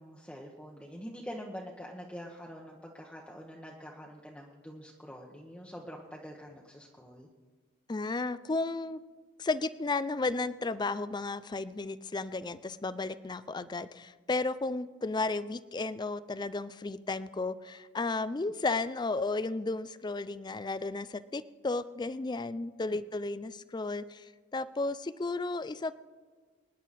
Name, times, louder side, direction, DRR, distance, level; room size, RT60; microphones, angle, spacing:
voice 1, 0.0-7.3, equal, 5° left, -2 dB, 1.0 m, -45 dB
voice 2, 7.9-9.0 9.4-24.2 24.5-25.9, left 3 dB, 20° left, 15 dB, 0.4 m, -33 dB
24.5 x 10.5 x 4.2 m, 1.5 s
head